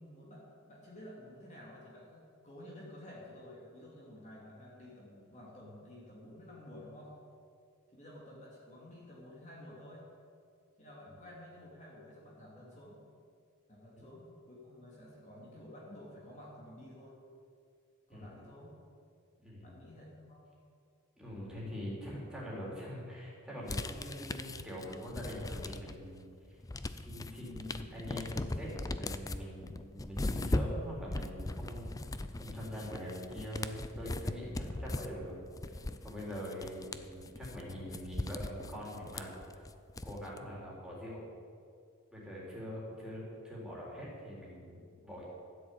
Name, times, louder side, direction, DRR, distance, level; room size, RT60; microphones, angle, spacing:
voice 1, 0.0-7.1 7.9-10.1 10.8-13.0 13.7-17.2 18.1-18.8 19.6-20.5, left 1 dB, 35° left, -5 dB, 2.7 m, -52 dB
voice 2, 19.4-19.7 21.2-26.6 27.0-31.9 32.3-35.4 36.0-39.3 40.0-41.2 42.1-45.2, equal, 5° right, -6 dB, 4.0 m, -43 dB
sound 1, 23.7-26.1 26.4-40.4, left 2 dB, 15° left, 0.4 m, -39 dB
13.5 x 7.9 x 8.8 m, 2.3 s
head